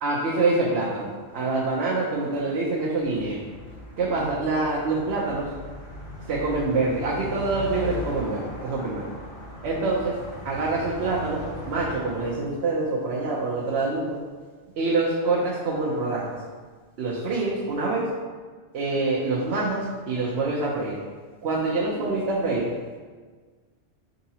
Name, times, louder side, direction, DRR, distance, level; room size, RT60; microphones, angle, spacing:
voice 1, 0.0-3.4 4.0-5.5 6.3-9.1 9.6-10.2 10.4-14.2 14.8-16.4 17.0-18.1 18.7-21.0 21.4-22.7, right 3 dB, 75° right, -4 dB, 0.9 m, -26 dB
sound 1, 3.0-12.3, left 1 dB, 55° left, 1.3 m, -39 dB
4.6 x 4.0 x 2.8 m, 1.5 s
omnidirectional pair, 1.1 m